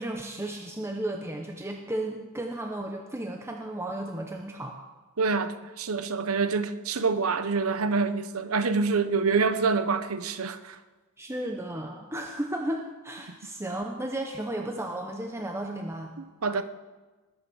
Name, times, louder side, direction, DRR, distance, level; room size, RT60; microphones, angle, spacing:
voice 1, 0.0-4.8 11.2-16.1, right 1 dB, 15° right, 1.0 m, -34 dB
voice 2, 5.2-10.8 16.2-16.6, right 4 dB, 85° right, 0.9 m, -26 dB
20.0 x 8.4 x 6.3 m
head